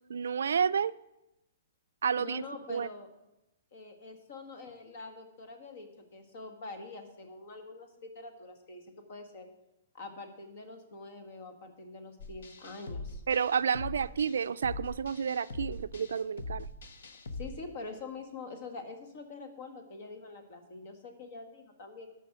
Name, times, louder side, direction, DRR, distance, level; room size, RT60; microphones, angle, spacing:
voice 1, 0.1-0.9 2.0-2.4 2.7-2.9 13.3-16.7, right 7 dB, 85° right, 16 dB, 0.3 m, -30 dB
voice 2, 2.2-3.1 3.7-9.5 9.9-13.2 17.3-22.1, left 3 dB, 55° left, 7 dB, 1.9 m, -45 dB
sound 1, 12.2-17.5, left 2 dB, 75° left, 1.1 m, -42 dB
13.5 x 5.6 x 6.1 m, 0.93 s
hypercardioid pair, 155°, 0 cm